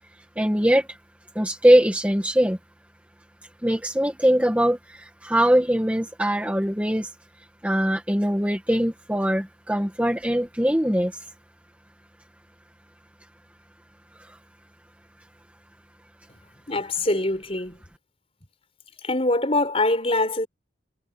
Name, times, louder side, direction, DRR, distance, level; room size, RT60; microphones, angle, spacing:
voice 1, 0.4-0.9 1.4-2.6 3.6-7.1 7.6-11.1, equal, 5° right, 1.8 m, -21 dB
voice 2, 16.7-17.8 19.0-20.5, left 2 dB, 30° left, 5.4 m, -24 dB
head